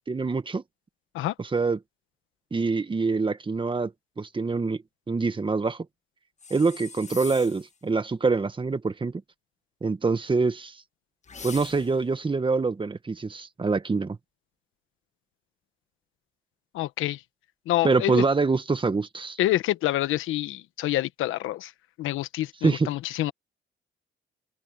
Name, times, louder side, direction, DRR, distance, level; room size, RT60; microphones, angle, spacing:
voice 1, 0.1-0.6 1.5-1.8 2.5-3.9 4.2-4.8 5.1-5.8 6.5-9.2 9.8-10.7 11.4-14.2 17.8-19.4 22.6-22.9, right 4 dB, 25° right, 1.6 m, -25 dB
sound 1, 6.4-7.7 11.2-12.1, left 5 dB, 35° left, 1.5 m, -42 dB
voice 2, 16.7-17.2 17.7-18.2 19.4-21.7 22.0-23.3, left 15 dB, 90° left, 1.2 m, -27 dB
open air
cardioid pair, 90°, 20 cm